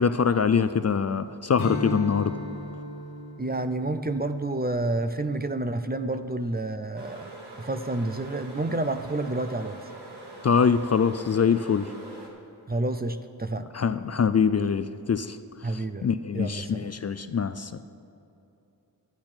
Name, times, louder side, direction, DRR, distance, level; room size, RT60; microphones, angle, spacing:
voice 1, 0.0-2.4 10.4-11.9 13.7-15.4 16.0-17.8, left 6 dB, 40° left, 12 dB, 0.4 m, -24 dB
Strum, 1.6-6.3, left 1 dB, 70° left, 1.6 m, -38 dB
voice 2, 3.4-7.3 7.6-9.8 12.7-13.6 15.6-16.1 16.3-16.9, right 2 dB, 25° right, 10 dB, 0.5 m, -29 dB
sound 1, 7.0-12.3, right 2 dB, 90° right, 1.6 m, -44 dB
12.0 x 10.5 x 4.4 m, 2.7 s
wide cardioid pair, 55°, 39 cm